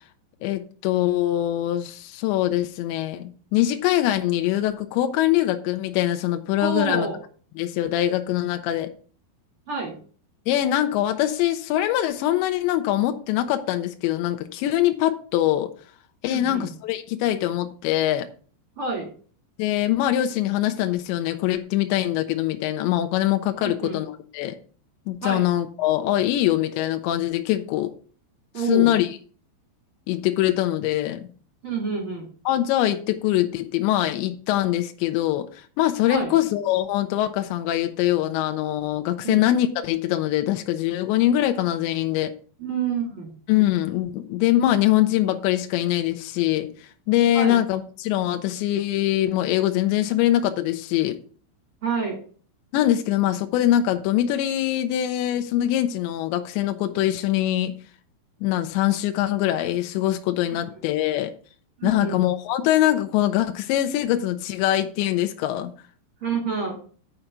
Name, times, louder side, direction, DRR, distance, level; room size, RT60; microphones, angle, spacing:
voice 1, 0.4-7.1 7.6-8.9 10.5-15.7 16.2-18.3 19.6-24.5 25.1-27.9 28.6-29.2 30.1-31.3 32.5-42.3 43.5-51.2 52.7-57.8 58.4-61.3 61.8-65.7, left 13 dB, 80° left, 2.8 m, -23 dB
voice 2, 6.6-7.2 9.7-10.0 16.2-16.7 18.8-19.1 23.6-24.0 25.2-25.5 28.5-29.0 31.6-32.3 36.1-36.3 39.2-39.4 42.6-43.3 47.3-47.6 51.8-52.2 60.5-60.6 61.8-62.2 66.2-66.8, right 4 dB, 35° right, 2.4 m, -28 dB
7.4 x 5.9 x 6.6 m
omnidirectional pair, 5.6 m